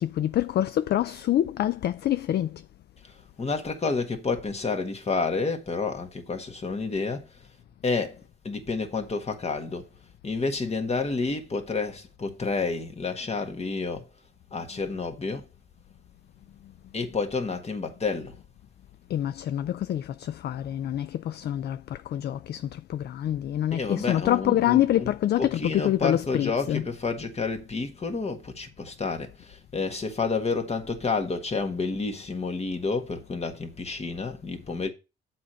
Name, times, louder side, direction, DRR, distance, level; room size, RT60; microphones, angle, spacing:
voice 1, 0.0-2.6 19.1-26.8, left 12 dB, 55° left, 0.4 m, -26 dB
voice 2, 3.0-7.3 7.8-8.2 8.4-9.9 10.2-14.1 14.5-15.5 16.9-18.4 23.7-34.9, left 4 dB, 30° left, 1.6 m, -30 dB
7.4 x 4.4 x 6.3 m
cardioid pair, 90°, 20 cm